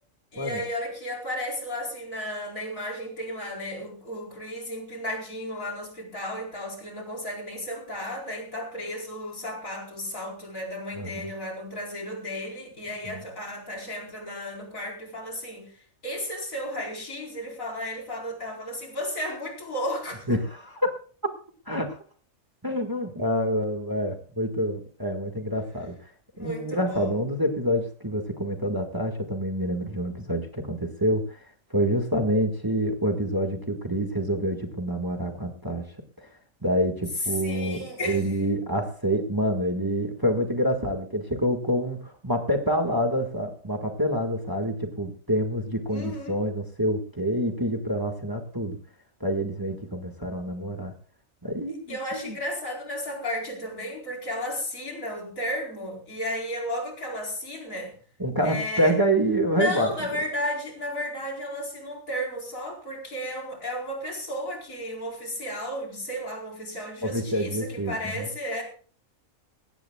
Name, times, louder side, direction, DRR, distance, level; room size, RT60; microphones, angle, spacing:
voice 1, 0.3-20.4 26.3-27.2 37.4-38.4 45.9-46.4 51.9-57.9 58.4-59.0 59.5-68.6, left 1 dB, 75° left, 0 dB, 4.9 m, -34 dB
voice 2, 11.0-11.3 13.0-13.2 20.3-20.8 21.7-22.0 22.6-26.1 26.4-36.3 36.6-48.8 49.2-51.0 51.4-52.4 58.2-59.9 67.0-68.3, equal, 15° right, 4 dB, 1.7 m, -27 dB
20.5 x 16.5 x 2.3 m, 0.42 s
omnidirectional pair, 1.4 m